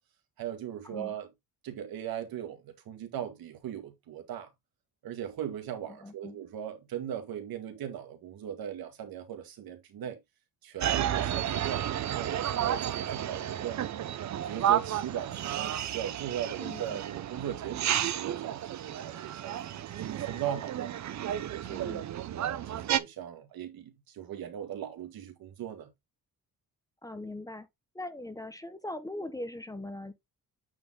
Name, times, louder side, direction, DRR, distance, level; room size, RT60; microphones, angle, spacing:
voice 1, 0.4-1.3 1.6-4.5 5.0-10.2 10.6-13.8 14.4-20.9 21.5-25.9, right 10 dB, 80° right, 2.0 m, -39 dB
voice 2, 5.9-6.4 11.1-11.3 16.6-17.0 21.6-22.0 27.0-27.7 27.9-30.1, left 1 dB, 10° left, 0.8 m, -41 dB
sound 1, 10.8-23.0, right 11 dB, 50° right, 0.7 m, -32 dB
8.8 x 4.1 x 3.7 m
cardioid pair, 165°, 35 cm